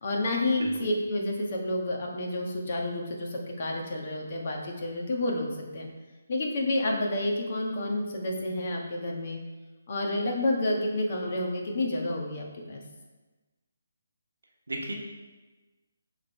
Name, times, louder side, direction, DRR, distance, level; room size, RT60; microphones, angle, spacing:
voice 1, 0.0-5.5 5.7-5.9 6.3-9.4 9.9-12.8, left 1 dB, 50° left, 0 dB, 1.3 m, -29 dB
voice 2, 0.6-0.9 14.7-14.9, right 1 dB, 90° right, 0 dB, 1.2 m, -34 dB
6.4 x 3.6 x 4.7 m, 1.2 s
figure-of-eight pair, 155°, 0 cm